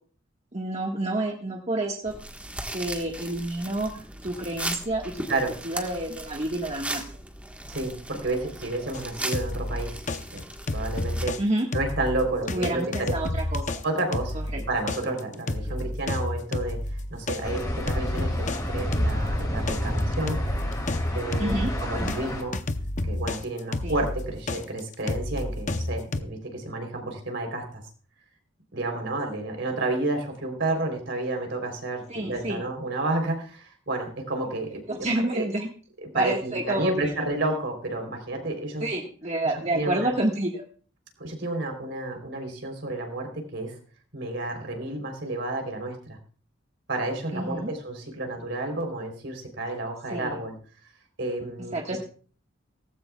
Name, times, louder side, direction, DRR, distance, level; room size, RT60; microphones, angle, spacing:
voice 1, 0.5-2.1 2.7-5.4 5.6-7.0 11.4-11.7 12.5-13.7 14.3-14.6 15.6-15.9 21.4-22.2 23.8-24.1 32.1-32.6 34.9-35.7 36.1-37.2 38.8-40.6 47.3-47.7 50.1-50.4 51.7-52.0, right 1 dB, 35° right, 0 dB, 1.6 m, -29 dB
sound 1, 2.0-11.2, right 1 dB, 5° right, 1.4 m, -37 dB
voice 2, 7.7-9.9 10.3-10.4 10.7-11.4 11.7-13.1 13.8-14.4 14.7-16.8 17.1-20.4 21.1-22.6 23.0-27.8 28.7-35.1 35.3-35.5 36.0-38.8 39.7-40.1 41.2-43.7 44.1-46.2 46.9-50.5 51.2-51.8, right 2 dB, 65° right, 4 dB, 3.6 m, -30 dB
sound 2, 8.9-11.4 11.7-22.2 22.5-26.2, left 2 dB, 40° left, 0.7 m, -30 dB
sound 3, 17.4-22.4, equal, 20° left, 3.2 m, -29 dB
17.5 x 15.0 x 2.4 m, 0.42 s
head